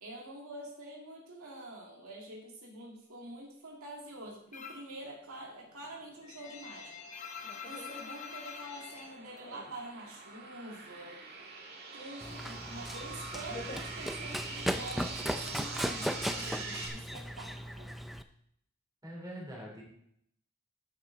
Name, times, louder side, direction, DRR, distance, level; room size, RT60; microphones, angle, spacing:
voice 1, 0.0-7.0 7.6-11.2 11.9-18.0, right 1 dB, 80° right, -2 dB, 2.2 m, -46 dB
sound 1, 4.5-5.0 5.3-10.2 10.4-11.5 11.8-14.6, left 5 dB, 35° left, 0.7 m, -46 dB
sound 2, 6.1-16.9, right 4 dB, 45° right, 1.6 m, -44 dB
Run, 12.2-18.2, equal, ahead, 0.3 m, -37 dB
voice 2, 19.0-19.8, equal, 15° right, -3 dB, 3.2 m, -43 dB
10.5 x 7.5 x 3.9 m, 0.73 s
head